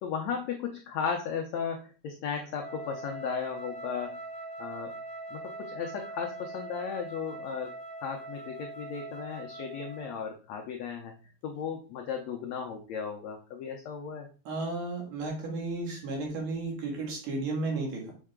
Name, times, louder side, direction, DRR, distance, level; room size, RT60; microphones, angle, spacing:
voice 1, 0.0-4.2 4.6-4.9 5.3-7.7 8.0-11.1 11.4-14.3, left 6 dB, 85° left, 2 dB, 1.5 m, -35 dB
Wind instrument woodwind instrument, 2.5-10.2, right 2 dB, 15° right, 2.2 m, -42 dB
voice 2, 14.5-18.1, right 3 dB, 70° right, 0 dB, 3.6 m, -33 dB
7.2 x 5.6 x 3.6 m, 0.38 s
omnidirectional pair, 4.1 m